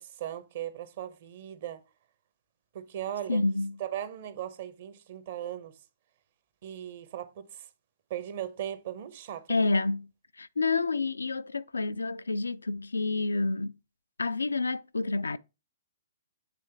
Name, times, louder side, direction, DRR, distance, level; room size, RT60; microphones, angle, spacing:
voice 1, 0.0-1.8 2.7-3.4 3.8-5.7 6.6-7.7 8.1-9.7, right 11 dB, 50° right, 0.8 m, -38 dB
voice 2, 3.3-3.8 9.5-10.1 10.4-13.8 14.2-15.4, left 3 dB, 80° left, 0.3 m, -29 dB
7.5 x 3.1 x 4.5 m
figure-of-eight pair, 120°, 0 cm